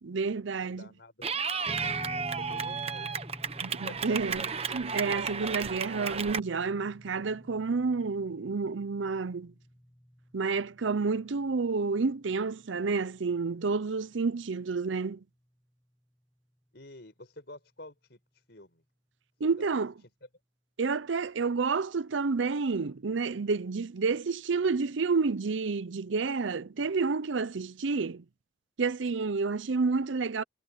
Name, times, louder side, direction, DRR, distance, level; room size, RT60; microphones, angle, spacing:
voice 1, 0.0-0.9 3.6-4.5 4.7-9.5 10.3-15.2 19.4-19.9 20.8-28.2 28.8-30.4, right 4 dB, 75° right, 0.6 m, -29 dB
voice 2, 0.6-1.3 1.7-3.3 3.8-4.5 16.7-18.2 18.5-18.8 19.6-19.7, left 1 dB, 55° left, 5.8 m, -49 dB
Clapping / Cheering, 1.2-6.4, right 6 dB, 30° right, 1.0 m, -33 dB
sound 1, 1.6-14.2, equal, 5° left, 0.7 m, -48 dB
head